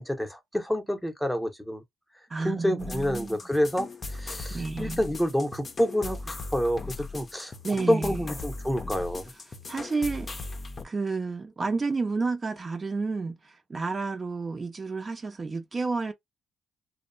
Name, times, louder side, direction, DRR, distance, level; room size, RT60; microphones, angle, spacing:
voice 1, 0.0-1.8 2.4-7.5 7.9-9.2, equal, 5° left, 0.8 m, -28 dB
voice 2, 2.3-3.4 4.5-5.0 7.6-8.3 9.7-10.3 10.8-16.1, right 4 dB, 30° right, 0.6 m, -30 dB
sound 1, 2.8-10.8, left 3 dB, 35° left, 0.6 m, -38 dB
2.8 x 2.0 x 2.6 m
cardioid pair, 90°, 0 cm